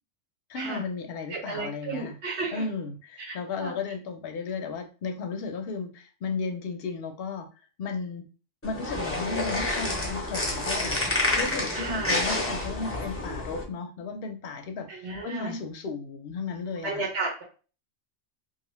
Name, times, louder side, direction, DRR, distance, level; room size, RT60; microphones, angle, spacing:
voice 1, 0.5-2.2 2.5-7.5 7.8-8.3 8.6-17.1, left 4 dB, 65° left, 6 dB, 0.7 m, -34 dB
voice 2, 1.3-2.6 3.3-3.7 11.7-12.2 14.9-15.5 16.8-17.4, right 3 dB, 65° right, -2 dB, 1.1 m, -33 dB
sound 1, 8.6-13.6, left 2 dB, 20° left, 0.4 m, -29 dB
2.4 x 2.4 x 3.0 m, 0.36 s
omnidirectional pair, 1.2 m